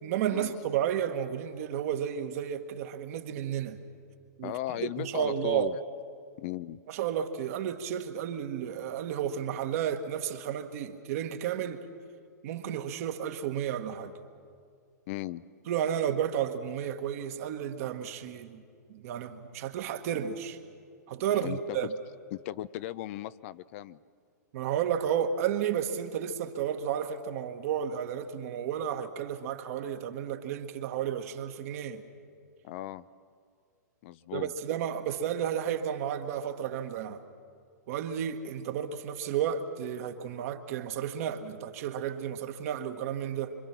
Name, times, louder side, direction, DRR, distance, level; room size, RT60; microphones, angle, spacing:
voice 1, 0.0-3.8 4.4-4.5 4.8-5.7 6.9-11.8 12.4-14.2 15.7-18.6 18.9-20.6 21.1-21.9 24.5-32.0 34.3-37.2 37.9-43.6, right 9 dB, 55° right, 1.5 m, -32 dB
voice 2, 4.4-5.8 6.4-6.8 15.1-15.4 21.3-21.8 22.3-24.0 32.6-33.0 34.0-34.5, left 15 dB, 45° left, 0.5 m, -37 dB
26.0 x 25.5 x 6.1 m
hypercardioid pair, 120°, 10 cm